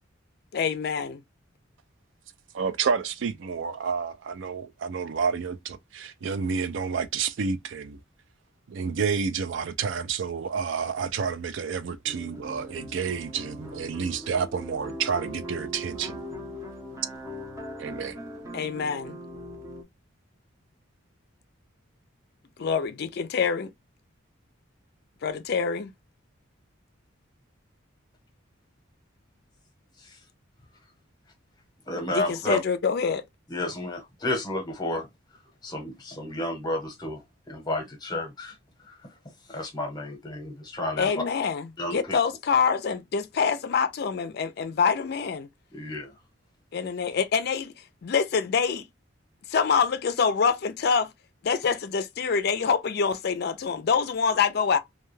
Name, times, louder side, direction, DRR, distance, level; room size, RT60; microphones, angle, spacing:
voice 1, 0.5-1.2 18.5-19.2 22.6-23.7 25.2-25.9 32.3-33.2 41.0-41.7 41.9-45.5 46.7-47.7 48.0-48.9 49.5-51.1 51.4-54.8, left 6 dB, 50° left, 0.4 m, -25 dB
voice 2, 2.5-8.0 8.7-16.2 17.8-18.2, right 6 dB, 65° right, 0.4 m, -29 dB
sound 1, 12.1-19.8, equal, 15° right, 0.6 m, -40 dB
voice 3, 31.9-32.6 33.5-35.1 35.6-38.6 38.9-41.1 41.8-42.2 45.7-46.1, left 1 dB, 20° left, 0.8 m, -31 dB
2.2 x 2.2 x 3.1 m
head